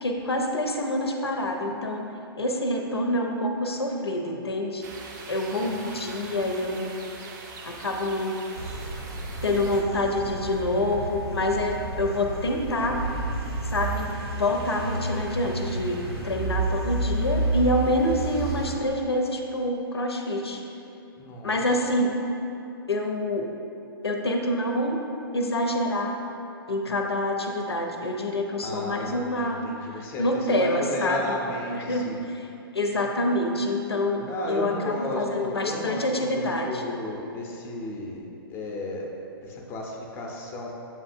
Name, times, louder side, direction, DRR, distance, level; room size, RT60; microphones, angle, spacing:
voice 1, 0.0-2.1 2.4-4.8 5.3-7.1 7.6-8.4 9.4-13.0 13.7-20.6 21.4-22.1 22.9-23.5 24.0-25.0 25.3-26.2 26.7-31.2 31.7-32.5 32.7-36.8, left 1 dB, 90° left, 2 dB, 0.5 m, -27 dB
sound 1, 4.8-9.8, right 3 dB, 50° right, 0.5 m, -42 dB
voice 2, 5.6-5.9 21.2-21.6 28.6-32.2 34.3-39.1 39.4-40.7, left 2 dB, 20° left, 0 dB, 0.5 m, -34 dB
sound 2, 8.5-18.8, right 3 dB, 85° right, 1.0 m, -31 dB
7.3 x 2.7 x 2.5 m, 2.8 s
figure-of-eight pair, 120°, 13 cm